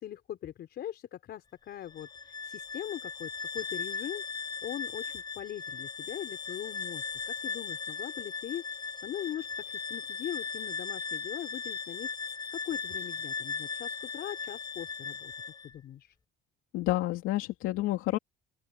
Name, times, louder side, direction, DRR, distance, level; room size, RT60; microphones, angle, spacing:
voice 1, 0.0-15.3 15.6-16.2, left 11 dB, 55° left, 4.7 m, -41 dB
Bowed string instrument, 1.8-15.7, left 5 dB, 20° left, 5.8 m, -38 dB
voice 2, 16.7-18.2, left 16 dB, 80° left, 2.6 m, -29 dB
open air
cardioid pair, 140°, 21 cm